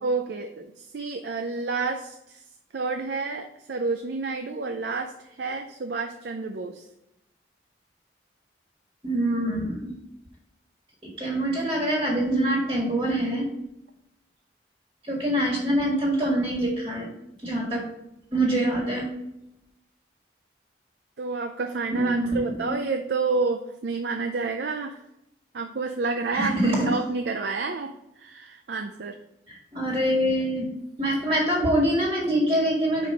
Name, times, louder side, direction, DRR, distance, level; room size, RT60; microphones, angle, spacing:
voice 1, 0.0-2.4 2.7-6.8 21.2-25.0 25.5-26.5 26.9-29.2, right 4 dB, 65° right, 5 dB, 0.5 m, -29 dB
voice 2, 9.0-9.9 11.2-13.5 15.1-17.1 17.4-17.8 18.3-19.1 21.9-22.7 26.3-26.9 29.5-30.7 31.0-33.1, right 1 dB, 25° right, -2 dB, 1.7 m, -25 dB
5.1 x 4.7 x 5.6 m, 0.85 s
head